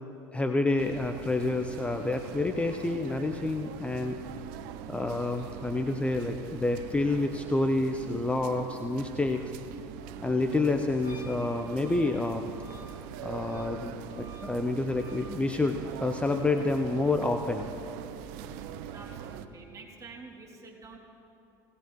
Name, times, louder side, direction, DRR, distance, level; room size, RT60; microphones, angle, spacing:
voice 1, 0.3-4.2 4.9-9.4 10.2-12.5 13.2-17.7, left 2 dB, 10° left, 6 dB, 0.7 m, -28 dB
sound 1, 0.8-19.5, right 9 dB, 70° right, 0.6 m, -42 dB
Wind instrument woodwind instrument, 11.0-15.3, right 1 dB, 85° left, 2.2 m, -52 dB
voice 2, 18.9-21.0, right 3 dB, 30° right, -1 dB, 2.8 m, -47 dB
18.0 x 17.0 x 3.1 m, 2.8 s
hypercardioid pair, 80°, 11 cm